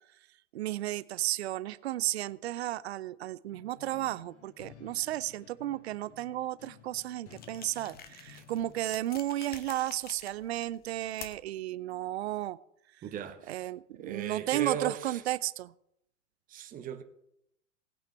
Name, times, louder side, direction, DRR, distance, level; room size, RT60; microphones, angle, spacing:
voice 1, 0.5-12.6 13.5-15.7, right 14 dB, 60° right, 0.6 m, -33 dB
sound 1, 3.5-8.8, left 7 dB, 60° left, 2.3 m, -55 dB
sound 2, 7.3-11.6, left 8 dB, 25° left, 1.2 m, -49 dB
voice 2, 13.0-13.7 13.9-15.2 16.5-17.0, right 8 dB, 20° right, 1.1 m, -37 dB
19.0 x 8.9 x 3.4 m
figure-of-eight pair, 95°, 37 cm